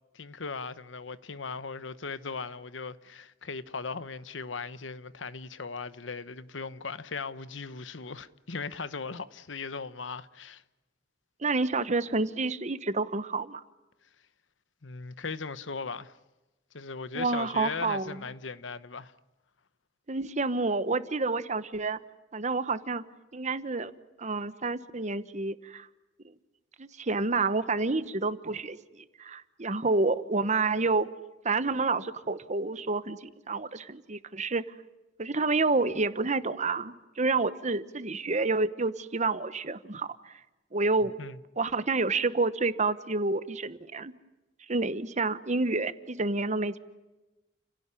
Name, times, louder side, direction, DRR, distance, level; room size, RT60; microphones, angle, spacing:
voice 1, 0.1-10.6 14.8-16.1 16.7-19.1 41.2-41.4, left 4 dB, 80° left, 1.0 m, -38 dB
voice 2, 11.4-13.6 17.1-18.2 20.1-22.0 22.3-23.0 23.3-23.9 24.2-25.9 26.2-26.3 26.8-31.1 31.4-34.6 35.2-40.3 40.7-41.2 41.6-44.1 44.7-46.8, right 3 dB, 40° right, 1.1 m, -29 dB
30.0 x 17.0 x 9.8 m
head